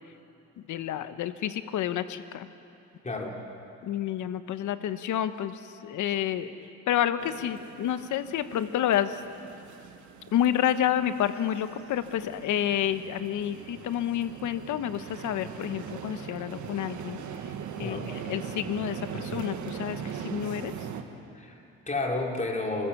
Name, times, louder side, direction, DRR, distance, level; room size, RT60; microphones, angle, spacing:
voice 1, 0.7-2.5 3.8-6.5 6.9-9.2 10.3-17.2 17.8-20.7, left 10 dB, 80° left, 11 dB, 1.1 m, -29 dB
sound 1, 7.2-21.0, right 7 dB, 75° right, 1.6 m, -41 dB
voice 2, 21.3-22.9, left 2 dB, 25° left, 0 dB, 3.8 m, -31 dB
29.5 x 14.5 x 7.1 m, 2.9 s
cardioid pair, 90°, 30 cm